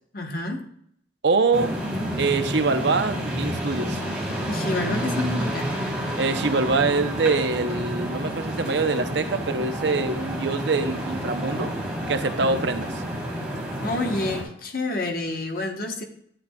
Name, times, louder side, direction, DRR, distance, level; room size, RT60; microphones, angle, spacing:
voice 1, 0.1-0.7 4.5-5.7 12.4-12.7 13.8-16.0, left 2 dB, 50° left, 4 dB, 1.2 m, -29 dB
voice 2, 1.2-1.7 2.2-4.0 6.2-11.7 12.1-12.9, right 3 dB, 75° right, 9 dB, 0.7 m, -24 dB
sound 1, 1.5-14.4, equal, 5° right, 3.2 m, -29 dB
Bass guitar, 6.3-10.0, equal, 80° left, 1.5 m, -46 dB
11.0 x 8.3 x 2.3 m, 0.68 s
head